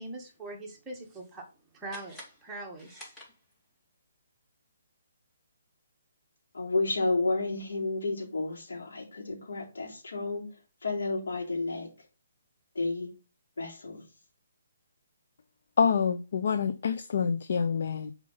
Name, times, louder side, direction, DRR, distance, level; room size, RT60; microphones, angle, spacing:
voice 1, 0.0-1.5 1.7-3.1, right 2 dB, 10° right, 1.9 m, -42 dB
sound 1, 1.9-3.8, left 1 dB, 10° left, 2.6 m, -50 dB
voice 2, 6.5-10.5 10.8-11.9 12.8-13.1 13.6-14.0, left 3 dB, 85° left, 3.8 m, -31 dB
voice 3, 15.8-18.1, left 6 dB, 65° left, 0.7 m, -27 dB
6.6 x 4.9 x 5.6 m
hypercardioid pair, 155°, 0 cm